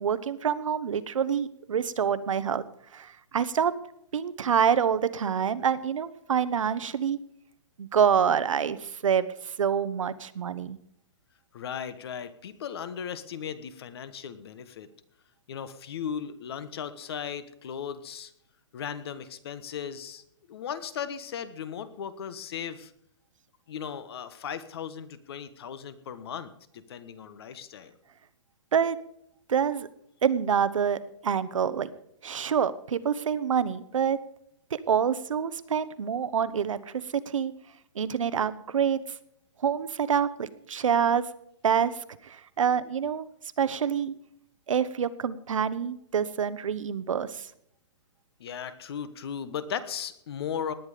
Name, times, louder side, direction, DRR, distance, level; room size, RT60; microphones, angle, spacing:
voice 1, 0.0-2.6 2.9-3.7 4.1-7.2 7.8-10.8 28.7-29.0 29.5-29.9 30.2-31.9 32.2-34.2 34.7-36.8 37.1-37.5 37.9-39.0 39.6-41.3 41.6-41.9 42.2-43.3 43.6-44.1 44.7-47.5, right 7 dB, 85° right, 15 dB, 1.1 m, -26 dB
voice 2, 11.5-14.9 15.5-18.3 18.7-20.2 20.5-22.9 23.7-27.9 48.4-50.7, left 8 dB, 50° left, 14 dB, 1.3 m, -37 dB
18.5 x 9.6 x 5.1 m, 0.72 s
hypercardioid pair, 165°, 16 cm